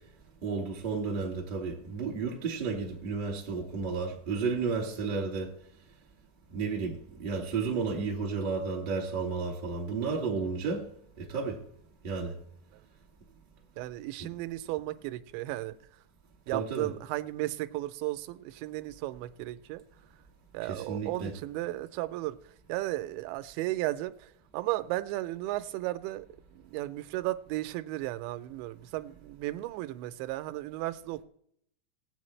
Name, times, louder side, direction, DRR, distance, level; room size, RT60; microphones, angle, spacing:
voice 1, 0.4-5.5 6.5-10.8 11.2-11.6 12.0-12.4 16.5-16.9 20.6-21.3, right 4 dB, 25° right, 1.1 m, -32 dB
voice 2, 13.8-15.7 16.5-19.8 20.5-22.4 22.7-26.3 26.5-31.2, right 17 dB, 85° right, 2.8 m, -35 dB
18.5 x 8.3 x 3.2 m
omnidirectional pair, 5.2 m